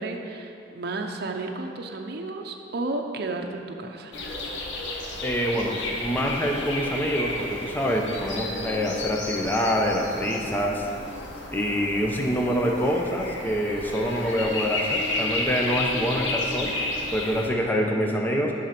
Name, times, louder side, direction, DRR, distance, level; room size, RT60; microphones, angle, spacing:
voice 1, 0.0-4.1, right 2 dB, 60° right, 4 dB, 0.6 m, -32 dB
sound 1, 4.1-17.5, left 2 dB, 70° left, 1.0 m, -32 dB
voice 2, 5.2-10.9 11.5-16.7 17.1-18.5, equal, 10° left, 0 dB, 0.7 m, -26 dB
11.0 x 3.9 x 5.9 m, 2.6 s
head